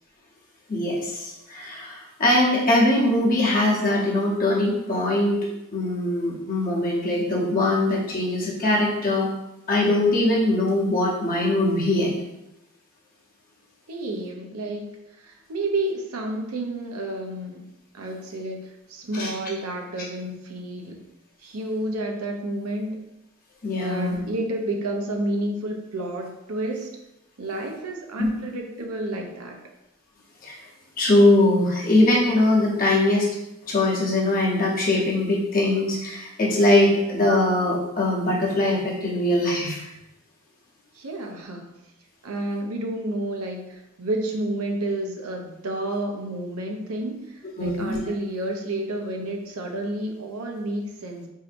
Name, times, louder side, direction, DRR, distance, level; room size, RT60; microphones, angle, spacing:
voice 1, 0.7-5.4 5.7-9.3 9.7-12.1 19.1-19.3 23.6-24.2 28.2-28.3 30.4-30.6 31.0-33.3 33.7-39.8 47.6-48.0, left 1 dB, 40° left, -4 dB, 0.9 m, -21 dB
voice 2, 13.9-17.7 17.9-21.0 21.4-23.0 23.7-26.9 27.4-29.6 40.9-41.7 42.2-51.3, right 1 dB, 85° right, 2 dB, 0.6 m, -30 dB
4.4 x 2.7 x 2.5 m, 0.92 s
head